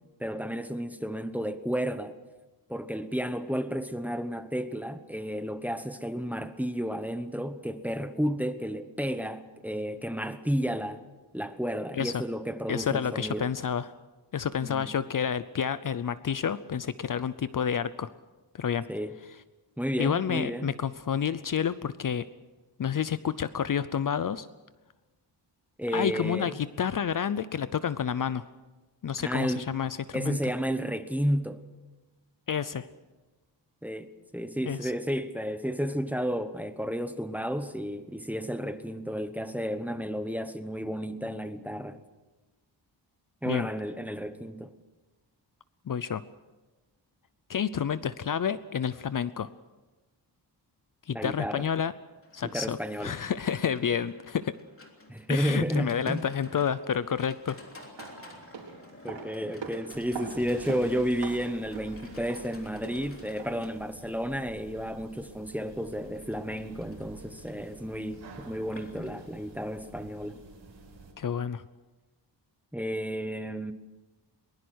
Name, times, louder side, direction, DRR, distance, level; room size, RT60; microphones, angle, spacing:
voice 1, 0.2-2.1 2.7-11.0 11.3-13.5 14.6-14.9 18.9-19.2 19.8-20.7 25.8-26.5 29.2-29.6 30.1-31.6 33.8-34.1 34.3-42.0 43.4-44.7 51.1-51.6 52.4-53.2 55.1-56.2 59.0-70.4 72.7-73.7, equal, 5° right, 1.0 m, -32 dB
voice 2, 12.7-13.9 14.3-18.1 18.5-18.8 20.0-22.3 22.8-24.5 25.9-28.4 29.0-30.4 32.5-32.9 34.7-34.9 43.5-43.7 45.9-46.2 47.5-49.5 51.1-51.9 52.3-54.6 55.3-57.6 71.2-71.6, left 8 dB, 50° left, 0.6 m, -29 dB
Livestock farm animals working animals, 52.2-70.3, left 2 dB, 30° left, 3.4 m, -54 dB
sound 1, 57.8-63.8 64.0-64.1, right 5 dB, 90° right, 4.0 m, -43 dB
sound 2, 59.9-71.1, right 3 dB, 65° right, 5.2 m, -50 dB
22.5 x 20.5 x 6.3 m
wide cardioid pair, 145°, 43 cm